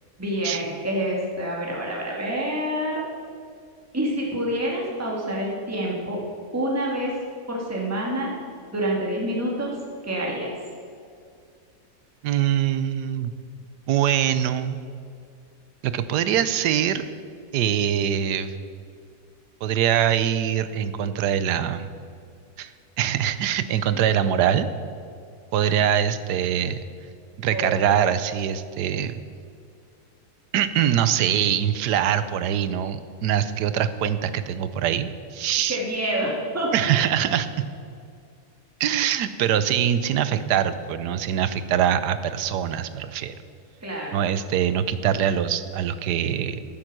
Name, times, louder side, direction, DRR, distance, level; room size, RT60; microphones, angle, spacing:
voice 1, 0.2-3.0 3.9-6.2 6.5-7.1 7.5-8.3 8.7-9.7 10.1-10.5 27.5-27.7 35.7-36.7 43.8-44.2, right 1 dB, 10° right, -3 dB, 2.1 m, -27 dB
voice 2, 12.2-13.3 13.9-14.8 15.8-17.0 17.5-18.5 19.6-21.9 22.6-22.7 23.0-24.7 25.5-26.8 27.4-29.1 30.5-35.8 36.7-37.5 38.8-43.4 44.1-46.6, right 9 dB, 85° right, 13 dB, 1.3 m, -23 dB
12.5 x 9.9 x 6.2 m, 2.3 s
omnidirectional pair, 1.7 m